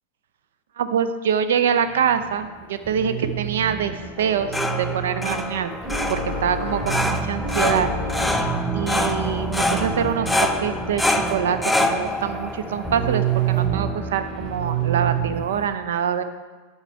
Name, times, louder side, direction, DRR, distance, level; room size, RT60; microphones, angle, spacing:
voice 1, 0.8-5.7 6.1-7.9 8.2-16.2, right 8 dB, 60° right, 10 dB, 0.5 m, -25 dB
sound 1, 1.8-15.7, right 5 dB, 15° right, 1.8 m, -28 dB
sound 2, 4.2-13.9, left 1 dB, 5° left, 0.5 m, -26 dB
8.0 x 4.4 x 5.6 m, 1.3 s
figure-of-eight pair, 90°, 0 cm